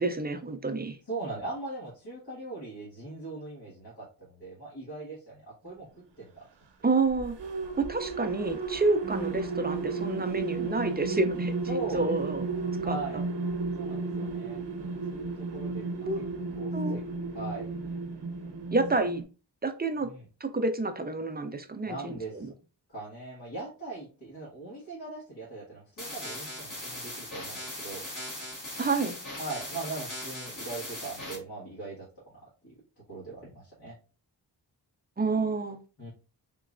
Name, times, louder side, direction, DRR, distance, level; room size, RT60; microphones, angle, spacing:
voice 1, 0.0-1.0 6.8-7.4 7.8-12.5 12.8-13.2 16.1-16.2 16.7-17.0 18.7-19.2 19.6-20.1 20.4-22.5 28.8-29.2 35.2-35.8, right 3 dB, 25° right, 8 dB, 0.4 m, -29 dB
voice 2, 1.1-5.9 6.2-6.5 11.7-12.1 12.8-13.2 13.8-14.6 15.1-15.8 16.1-16.2 16.6-17.0 17.3-17.7 20.0-20.2 21.8-22.5 22.9-28.0 29.4-32.8 33.1-34.0 36.0-36.1, right 2 dB, 70° left, -7 dB, 1.8 m, -40 dB
sound 1, 7.1-19.2, right 4 dB, 70° right, 0.7 m, -33 dB
sound 2, 26.0-31.4, left 1 dB, 45° left, 1.6 m, -39 dB
3.7 x 3.0 x 2.5 m, 0.34 s
wide cardioid pair, 115°, 43 cm